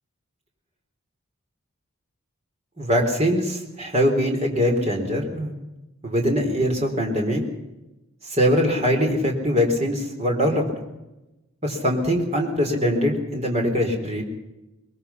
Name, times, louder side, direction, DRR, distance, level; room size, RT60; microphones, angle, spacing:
voice 1, 2.8-5.5 6.0-7.4 8.2-10.7 11.6-14.2, equal, 30° right, 2 dB, 3.9 m, -22 dB
22.0 x 21.5 x 5.8 m, 1.0 s
head